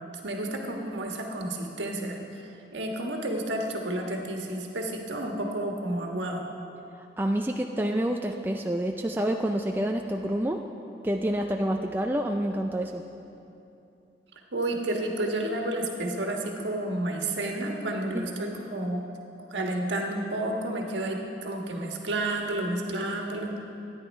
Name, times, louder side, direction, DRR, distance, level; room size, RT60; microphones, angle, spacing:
voice 1, 0.2-2.4 2.7-6.4 14.5-19.0 19.5-23.6, right 1 dB, 85° right, 1 dB, 1.5 m, -31 dB
voice 2, 7.2-10.6 11.0-13.0 18.1-18.3, right 1 dB, 10° right, 3 dB, 0.3 m, -28 dB
13.0 x 9.8 x 5.3 m, 2.9 s
head